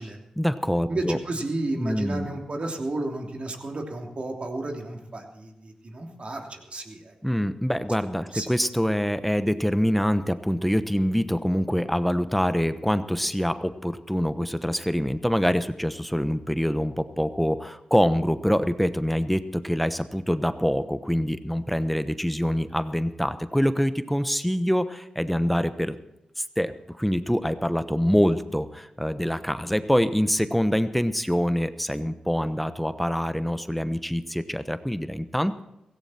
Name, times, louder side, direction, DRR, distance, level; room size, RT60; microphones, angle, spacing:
voice 1, 0.4-1.2 1.8-2.3 7.2-26.0 26.4-35.6, equal, 5° left, 11 dB, 1.0 m, -25 dB
voice 2, 0.9-7.1 8.3-8.5, right 2 dB, 50° right, 2 dB, 3.1 m, -32 dB
16.5 x 16.0 x 4.4 m, 0.89 s
cardioid pair, 45°, 2 cm